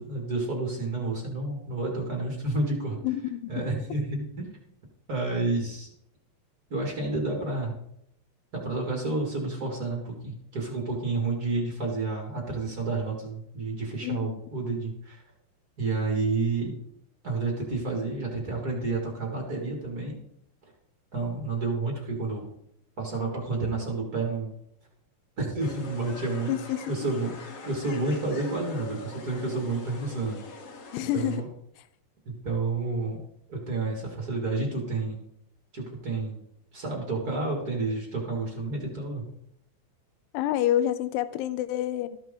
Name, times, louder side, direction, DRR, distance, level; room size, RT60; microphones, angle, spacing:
voice 1, 0.0-3.0 3.5-4.5 5.1-5.9 6.7-7.7 8.5-15.2 15.8-16.7 17.2-20.2 21.1-22.5 23.0-24.5 25.4-26.5 26.9-30.4 31.1-31.5 32.2-33.2 33.5-35.2 35.7-36.4 36.7-39.2, right 3 dB, 60° right, 0 dB, 0.9 m, -30 dB
voice 2, 3.0-3.5 14.0-14.4 26.5-26.8 30.9-31.4 31.8-31.9 40.3-42.2, left 12 dB, 80° left, 14 dB, 2.6 m, -28 dB
sound 1, 25.6-31.4, left 4 dB, 55° left, 1.8 m, -43 dB
12.5 x 10.5 x 3.8 m, 0.73 s
omnidirectional pair, 5.2 m